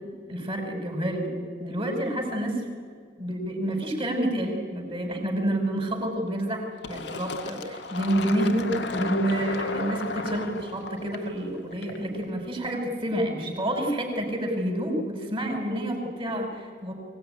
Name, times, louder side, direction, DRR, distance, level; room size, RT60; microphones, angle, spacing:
voice 1, 0.3-2.6 3.2-17.0, right 1 dB, 30° right, 2 dB, 5.4 m, -28 dB
Fill (with liquid), 6.8-12.2, left 3 dB, 65° left, 1.9 m, -34 dB
23.5 x 18.5 x 10.0 m, 2.1 s
head